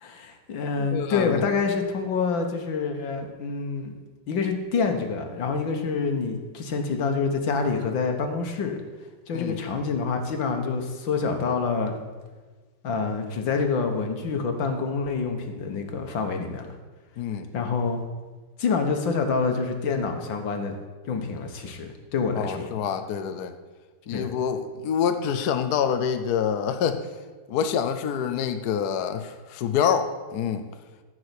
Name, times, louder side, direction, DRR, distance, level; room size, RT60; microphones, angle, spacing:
voice 1, 0.0-3.9 4.3-8.8 9.3-11.9 12.8-16.8 17.5-18.0 18.6-20.7 21.1-22.7 24.1-24.3, left 4 dB, 90° left, 5 dB, 2.0 m, -27 dB
voice 2, 0.8-1.4 9.3-9.6 17.2-17.5 22.4-23.5 24.1-27.0 27.5-30.7, left 8 dB, 65° left, 8 dB, 1.2 m, -26 dB
14.0 x 4.8 x 8.2 m, 1.3 s
omnidirectional pair, 2.0 m